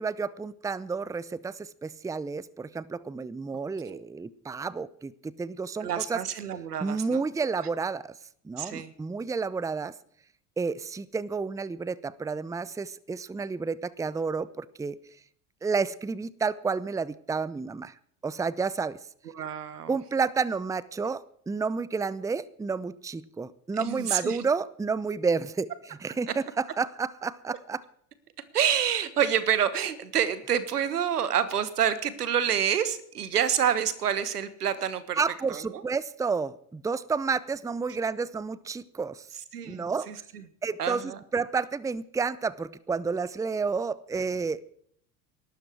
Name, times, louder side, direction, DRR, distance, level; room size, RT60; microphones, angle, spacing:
voice 1, 0.0-6.2 6.8-8.1 8.4-9.9 10.6-15.0 15.6-17.9 18.2-19.0 19.9-27.8 35.2-39.3 39.7-40.1 40.6-44.6, right 4 dB, 5° right, 20 dB, 0.6 m, -30 dB
voice 2, 5.8-7.2 8.6-8.9 19.3-19.9 21.0-21.1 23.7-24.4 26.3-26.4 27.5-27.6 28.5-35.2 35.5-35.8 39.5-40.4 40.8-41.2, right 9 dB, 85° right, 15 dB, 1.4 m, -28 dB
19.5 x 12.5 x 4.7 m, 0.66 s
hypercardioid pair, 65°, 45 cm